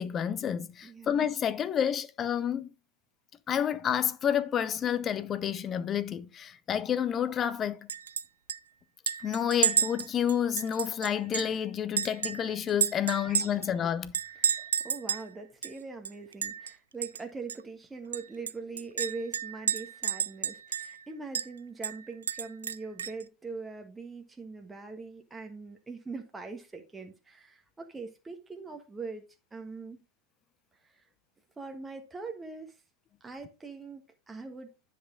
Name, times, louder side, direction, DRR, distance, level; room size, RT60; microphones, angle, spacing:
voice 1, 0.0-2.7 3.5-7.9 9.2-14.1, left 9 dB, 25° left, 0.7 m, -29 dB
voice 2, 0.8-1.2 14.4-29.2 29.5-30.0 30.8-30.9 31.6-32.7 33.2-34.0 34.3-34.7, right 4 dB, 10° right, 1.3 m, -42 dB
Chink clink, 7.9-8.2 8.5-8.6 9.1-11.6 12.0-13.7 14.1-15.3 15.6-15.7 16.1-16.7 17.0-17.2 17.5-17.6 18.1-21.0 21.4-21.5 21.8-23.2, right 7 dB, 70° right, 0.4 m, -31 dB
10.0 x 5.9 x 3.8 m
figure-of-eight pair, 90°, 0 cm